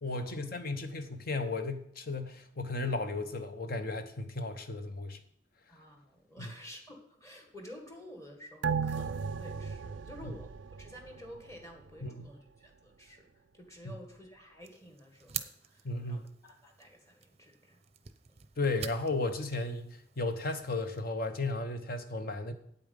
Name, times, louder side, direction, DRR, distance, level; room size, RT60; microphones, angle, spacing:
voice 1, 0.0-5.2 10.2-10.3 12.0-12.3 15.8-16.2 18.6-22.5, left 2 dB, 50° left, 1.0 m, -34 dB
voice 2, 5.7-13.3 13.5-17.8 18.3-18.4, equal, 15° left, 1.7 m, -51 dB
sound 1, 8.6-11.5 11.9-12.0, right 6 dB, 75° right, 0.4 m, -35 dB
sound 2, 14.6-21.0, right 9 dB, 35° right, 0.6 m, -47 dB
8.7 x 8.4 x 5.3 m
head